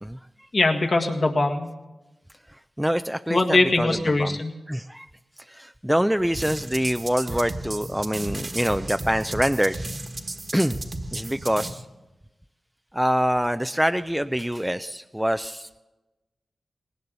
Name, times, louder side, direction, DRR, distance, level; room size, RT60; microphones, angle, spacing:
voice 1, 0.5-1.7 3.3-4.5, left 2 dB, 55° left, 2 dB, 1.8 m, -21 dB
voice 2, 2.8-4.4 4.7-5.1 5.5-9.8 10.5-10.8 11.1-11.8 12.9-15.8, equal, 5° right, 9 dB, 0.4 m, -25 dB
sound 1, 6.3-11.7, right 2 dB, 45° right, 1.4 m, -34 dB
18.5 x 17.5 x 4.1 m, 1.1 s
cardioid pair, 50°, 0 cm